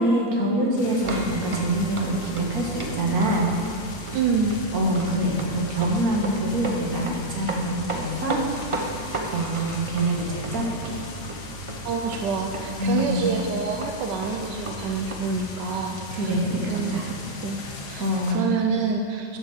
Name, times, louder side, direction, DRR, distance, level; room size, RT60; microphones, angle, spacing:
voice 1, 0.0-3.5 4.7-8.4 8.9-9.0 9.3-11.0 12.8-13.2 16.1-17.0 18.0-18.5, right 1 dB, 60° right, -1 dB, 2.1 m, -25 dB
sound 1, 0.8-18.3, left 3 dB, 75° left, 1.8 m, -38 dB
sound 2, 1.0-15.3, right 2 dB, 40° right, 0.4 m, -35 dB
voice 2, 4.1-4.7 11.8-16.4 16.7-17.2 17.4-19.4, right 5 dB, 85° right, 3 dB, 1.4 m, -27 dB
10.5 x 6.4 x 7.2 m, 2.3 s
omnidirectional pair, 1.8 m